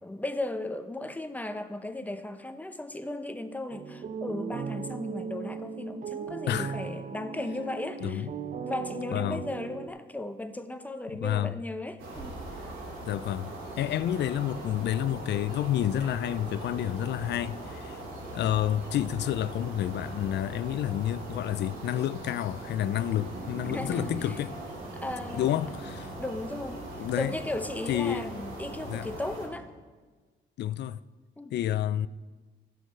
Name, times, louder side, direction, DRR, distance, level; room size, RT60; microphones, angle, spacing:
voice 1, 0.0-8.3 8.6-12.4 23.7-24.4 24.9-25.7 26.2-26.8 27.1-29.7 31.4-31.5, left 2 dB, 10° left, 0.8 m, -36 dB
sound 1, 3.7-9.9, right 6 dB, 40° right, 0.7 m, -37 dB
voice 2, 9.1-9.4 11.2-11.6 13.0-18.0 18.3-24.5 25.3-26.1 27.0-27.3 27.9-28.3 28.8-29.1 30.6-31.0 31.5-32.1, left 11 dB, 60° left, 0.4 m, -29 dB
sound 2, 12.0-29.5, right 2 dB, 75° right, 2.8 m, -40 dB
14.0 x 6.2 x 5.5 m
cardioid pair, 90°, 20 cm